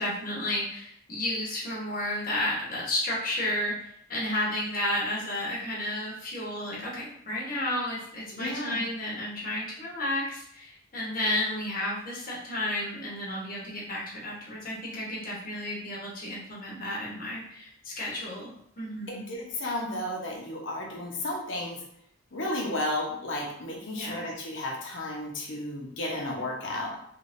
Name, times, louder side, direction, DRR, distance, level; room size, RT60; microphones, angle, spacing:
voice 1, 0.0-19.3 23.9-24.3, left 1 dB, 45° left, -5 dB, 1.1 m, -32 dB
voice 2, 8.3-8.8 19.1-21.8 22.3-27.0, left 1 dB, 65° left, -1 dB, 0.9 m, -33 dB
3.5 x 3.3 x 2.6 m, 0.69 s
head